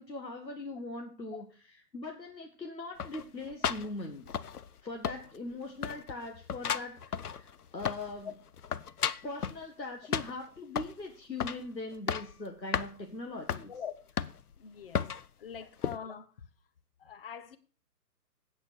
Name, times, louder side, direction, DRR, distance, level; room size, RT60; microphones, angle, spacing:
voice 1, 0.0-4.4 4.8-8.3 9.2-13.7 15.6-15.7, left 2 dB, 85° left, 1.9 m, -41 dB
sound 1, 3.0-4.8 5.0-5.6 5.8-8.2 8.5-9.6 10.1-11.0 11.4-11.7 11.9-12.4 12.7-12.9 13.5-13.7 14.2-14.6 14.9-15.3 15.8-16.0, left 7 dB, 65° left, 0.7 m, -34 dB
voice 2, 14.6-15.0 15.4-16.3 17.0-17.6, left 7 dB, 35° left, 1.0 m, -43 dB
8.7 x 8.2 x 6.3 m
figure-of-eight pair, 135°, 50 cm